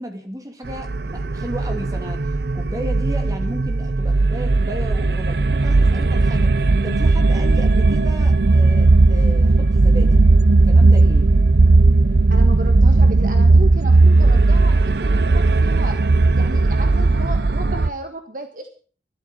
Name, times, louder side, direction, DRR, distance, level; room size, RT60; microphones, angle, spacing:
voice 1, 0.0-10.2 10.6-11.3, right 1 dB, 20° right, 3 dB, 3.0 m, -34 dB
sound 1, 0.7-17.9, right 3 dB, 65° right, 0.7 m, -16 dB
voice 2, 12.3-16.0 16.3-18.7, right 1 dB, 50° right, 6 dB, 1.5 m, -33 dB
13.0 x 12.5 x 6.6 m, 0.42 s
head